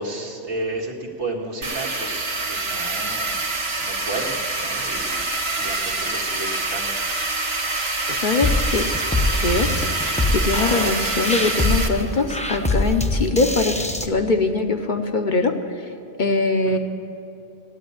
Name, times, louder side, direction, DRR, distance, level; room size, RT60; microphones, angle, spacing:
voice 1, 0.0-3.3 3.8-5.2 5.5-6.9 10.6-10.8 16.7-16.8, right 2 dB, 80° right, 0 dB, 2.1 m, -32 dB
sound 1, 1.6-11.9, right 3 dB, 65° right, 1.5 m, -26 dB
voice 2, 8.1-8.9 9.4-9.7 10.3-15.6 16.2-16.8, left 3 dB, 45° left, 5 dB, 0.9 m, -22 dB
sound 2, 8.4-14.1, left 1 dB, 10° left, 0.6 m, -24 dB
17.0 x 8.6 x 9.5 m, 2.6 s
omnidirectional pair, 1.2 m